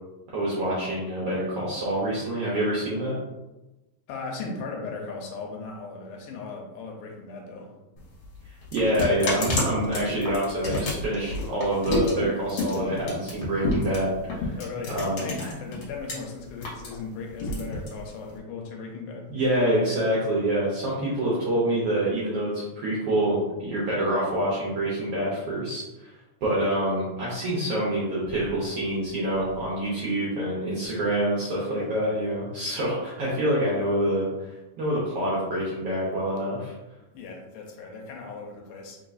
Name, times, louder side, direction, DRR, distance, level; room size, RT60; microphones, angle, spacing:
voice 1, 0.3-3.1 8.7-14.6 14.9-15.2 19.3-26.1 26.4-36.7, right 1 dB, 75° right, -7 dB, 1.4 m, -26 dB
voice 2, 4.1-7.7 14.6-19.7 31.7-32.0 37.1-39.0, left 4 dB, 80° left, 0 dB, 2.1 m, -37 dB
sound 1, 8.0-16.1 16.5-18.4, left 2 dB, 55° left, 1.5 m, -30 dB
4.7 x 3.6 x 2.6 m, 1.0 s
omnidirectional pair, 3.9 m